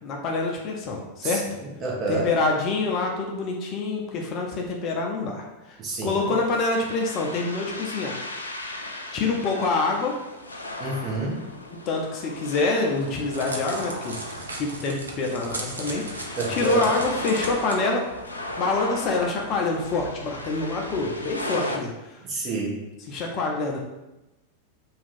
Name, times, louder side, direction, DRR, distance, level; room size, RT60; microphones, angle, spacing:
voice 1, 0.0-1.4 2.1-8.3 9.1-10.2 11.9-14.2 14.6-18.1 18.6-22.2 23.1-23.8, left 3 dB, 35° left, 0 dB, 0.6 m, -26 dB
voice 2, 1.2-2.3 5.8-6.2 10.8-11.4 16.4-16.8 22.2-22.8, right 3 dB, 30° right, -2 dB, 0.9 m, -29 dB
sound 1, 6.2-21.8, left 1 dB, 80° left, 0.4 m, -36 dB
Crackle, 12.9-17.7, right 2 dB, 75° right, 0.5 m, -37 dB
2.8 x 2.4 x 4.2 m, 0.98 s
figure-of-eight pair, 90°, 0 cm